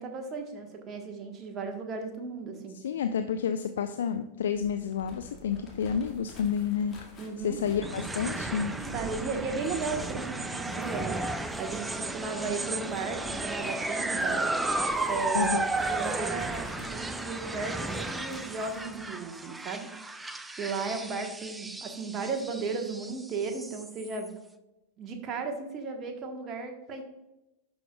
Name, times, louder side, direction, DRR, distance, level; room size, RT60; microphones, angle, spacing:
voice 1, 0.0-2.8 7.2-7.6 8.9-14.7 15.1-24.3 25.0-27.0, right 4 dB, 30° right, 3 dB, 1.3 m, -35 dB
voice 2, 2.7-7.0 7.4-8.7 15.3-15.7, left 7 dB, 60° left, 8 dB, 0.4 m, -30 dB
sound 1, 4.5-13.0, right 5 dB, 45° right, 0.8 m, -45 dB
sound 2, 4.8-19.0, left 1 dB, 25° left, 1.9 m, -50 dB
sound 3, 7.8-24.3, right 2 dB, 10° right, 0.4 m, -34 dB
11.5 x 5.2 x 2.4 m, 0.94 s
figure-of-eight pair, 90°, 0 cm